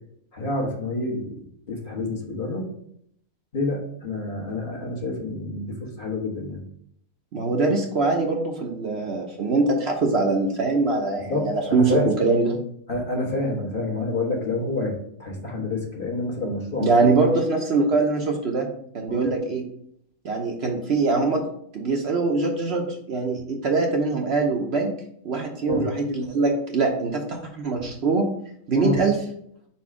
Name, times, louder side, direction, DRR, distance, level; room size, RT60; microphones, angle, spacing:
voice 1, 0.3-2.7 3.5-6.6 11.3-12.1 12.9-14.9 15.2-16.9 19.1-19.3 25.6-25.9 28.7-29.0, left 2 dB, 40° left, -1 dB, 1.3 m, -28 dB
voice 2, 7.3-12.6 16.8-18.7 18.9-19.6 20.2-21.4 21.7-24.9 25.2-28.3 28.7-29.2, right 3 dB, 55° right, 2 dB, 0.9 m, -23 dB
4.6 x 4.3 x 4.8 m, 0.69 s
omnidirectional pair, 1.5 m